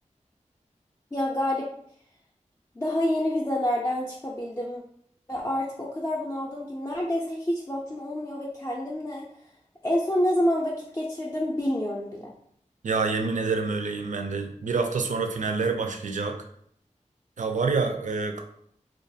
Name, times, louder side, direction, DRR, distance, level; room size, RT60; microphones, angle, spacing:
voice 1, 1.1-1.7 2.8-4.8 5.3-9.2 9.8-12.3, left 1 dB, 20° left, -4 dB, 0.4 m, -28 dB
voice 2, 12.8-16.4 17.4-18.4, right 4 dB, 70° right, 5 dB, 0.4 m, -27 dB
2.3 x 2.3 x 2.6 m, 0.66 s
wide cardioid pair, 65°, 13 cm